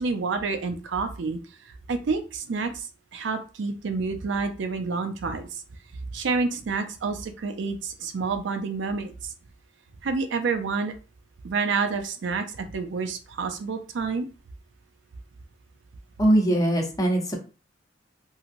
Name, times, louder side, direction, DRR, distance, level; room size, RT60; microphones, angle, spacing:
voice 1, 0.0-1.4 1.6-5.6 6.1-9.3 10.0-10.9 11.4-14.3, right 4 dB, 80° right, 7 dB, 0.5 m, -29 dB
voice 2, 16.2-17.3, right 1 dB, 20° left, 2 dB, 0.7 m, -21 dB
2.9 x 2.7 x 2.5 m, 0.35 s
head